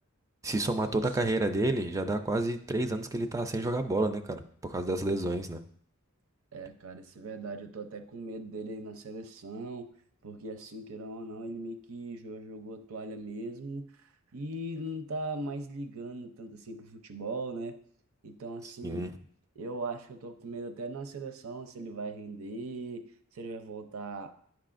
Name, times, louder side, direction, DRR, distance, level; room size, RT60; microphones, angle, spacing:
voice 1, 0.4-5.6 18.8-19.1, right 2 dB, 15° right, 0.3 m, -30 dB
voice 2, 6.5-9.9 10.2-13.9 14.3-17.8 18.2-19.1 19.6-24.4, right 2 dB, 70° right, 0.6 m, -39 dB
10.5 x 4.8 x 2.5 m
head